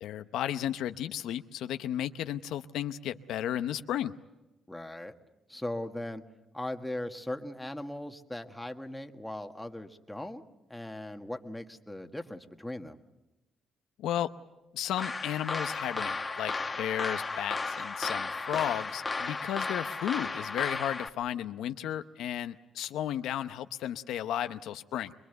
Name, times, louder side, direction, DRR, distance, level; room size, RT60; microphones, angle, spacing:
voice 1, 0.0-4.1 14.0-14.3 14.7-16.5 16.8-25.1, left 11 dB, 85° left, 9 dB, 0.8 m, -34 dB
voice 2, 4.7-5.2 5.5-6.2 6.5-10.4 10.7-13.0, left 1 dB, 5° left, 5 dB, 1.7 m, -39 dB
sound 1, 15.0-21.1, left 3 dB, 25° left, 1.3 m, -34 dB
25.0 x 22.0 x 8.1 m, 0.99 s
cardioid pair, 90°, 0 cm